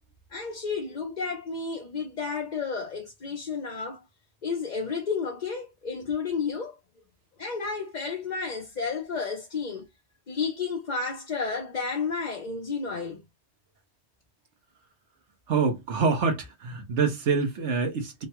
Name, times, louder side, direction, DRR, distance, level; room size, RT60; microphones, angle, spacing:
voice 1, 0.3-4.0 4.4-6.8 7.4-9.8 10.3-13.2, left 5 dB, 45° left, 0.8 m, -31 dB
voice 2, 15.5-18.3, right 5 dB, 90° right, 1.3 m, -26 dB
3.8 x 2.2 x 2.7 m
omnidirectional pair, 1.1 m